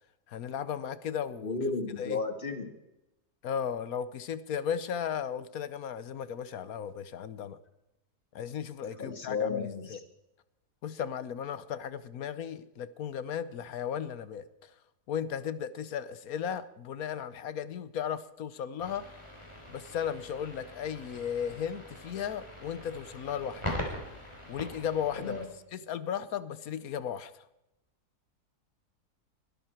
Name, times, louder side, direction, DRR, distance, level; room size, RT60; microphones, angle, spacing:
voice 1, 0.3-1.6 2.0-2.2 3.4-7.6 8.3-10.0 10.8-14.7 15.1-19.1 19.7-23.7 24.5-25.4 25.7-27.5, left 8 dB, 70° left, 15 dB, 1.2 m, -35 dB
voice 2, 1.4-2.7 9.0-10.0 25.2-25.5, left 4 dB, 35° left, 6 dB, 1.9 m, -33 dB
sound 1, 18.8-25.5, left 1 dB, 15° left, 3.7 m, -42 dB
22.0 x 12.5 x 4.5 m, 0.92 s
omnidirectional pair, 1.7 m